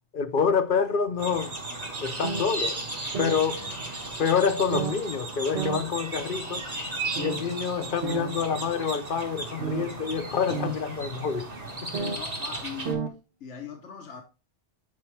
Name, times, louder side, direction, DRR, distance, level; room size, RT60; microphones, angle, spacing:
voice 1, 0.1-1.6 2.0-2.9 3.2-3.7 4.2-6.7 7.2-11.5 11.8-11.9, left 6 dB, 55° left, 0.8 m, -27 dB
sound 1, 1.2-12.9, right 2 dB, 35° right, 1.6 m, -35 dB
sound 2, 2.2-2.5 3.1-3.4 4.1-4.2 4.7-4.9 5.5-5.8 6.6-6.7 7.2-7.4 8.0-8.3 9.6-9.8 10.5-10.7 11.9-12.2 12.6-12.7 12.9-13.1, right 5 dB, 70° right, 1.4 m, -30 dB
voice 2, 11.9-13.1 13.4-14.2, left 6 dB, 85° left, 1.3 m, -41 dB
8.6 x 4.7 x 3.3 m
omnidirectional pair, 1.2 m